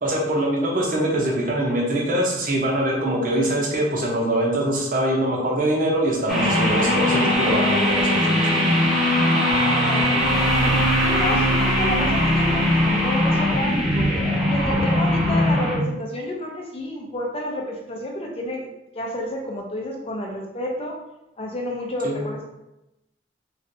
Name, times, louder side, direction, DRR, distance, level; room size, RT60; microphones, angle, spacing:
voice 1, 0.0-8.6 22.0-22.3, right 1 dB, 50° right, -1 dB, 0.8 m, -23 dB
sound 1, 6.3-15.8, left 1 dB, ahead, 0.8 m, -20 dB
voice 2, 9.6-10.5 11.0-14.1 14.5-18.7 18.9-21.0 21.4-22.5, left 1 dB, 35° left, 1 dB, 0.5 m, -30 dB
3.1 x 2.6 x 2.6 m, 0.91 s
head